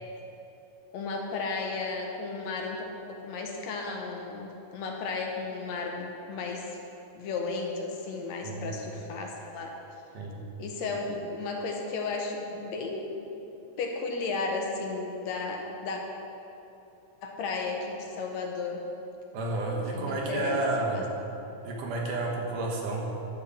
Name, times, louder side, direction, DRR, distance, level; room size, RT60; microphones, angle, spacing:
voice 1, 0.9-6.7 7.2-9.8 10.6-13.3 13.8-16.0 17.2-18.8 19.9-20.6 20.9-21.1, left 3 dB, 70° left, 1 dB, 2.0 m, -34 dB
voice 2, 8.4-8.8 10.1-10.4 10.9-11.0 19.3-21.1 21.6-23.1, right 2 dB, 90° right, -1 dB, 2.9 m, -31 dB
10.5 x 5.5 x 7.0 m, 3.0 s
omnidirectional pair, 3.5 m